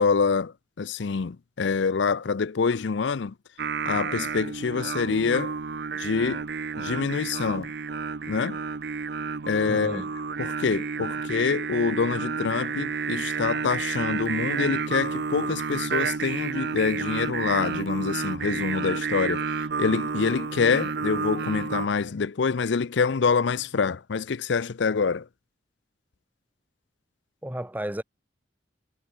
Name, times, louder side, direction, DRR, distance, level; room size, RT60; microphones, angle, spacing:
voice 1, 0.0-3.3 3.9-5.5 6.0-6.4 6.8-7.7 8.3-8.6 9.5-10.0 10.4-19.5 19.8-25.3, left 5 dB, 70° left, 0.5 m, -26 dB
Singing, 3.6-21.9, right 5 dB, 60° right, 0.6 m, -31 dB
voice 2, 9.7-10.1 27.4-28.0, right 1 dB, 10° right, 1.2 m, -32 dB
head